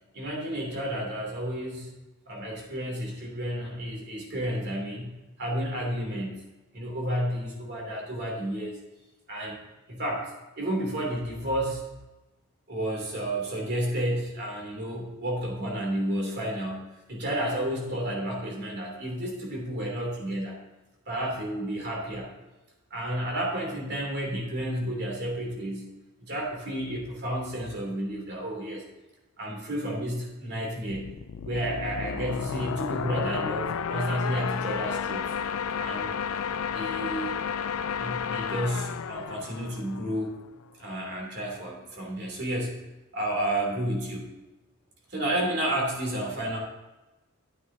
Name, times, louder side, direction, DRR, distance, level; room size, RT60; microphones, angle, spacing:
voice 1, 0.1-1.9 2.3-6.4 6.7-8.8 9.3-9.6 9.9-10.3 10.6-11.8 12.7-20.6 21.1-22.3 22.9-25.8 26.3-28.8 29.4-31.1 31.4-35.3 35.8-36.2 36.7-37.4 38.0-40.3 40.8-42.8 43.1-44.2 45.1-46.6, right 1 dB, 50° right, -1 dB, 3.0 m, -31 dB
sound 1, 30.9-40.4, left 7 dB, 75° left, 0.4 m, -32 dB
12.5 x 8.7 x 2.8 m, 1.0 s
head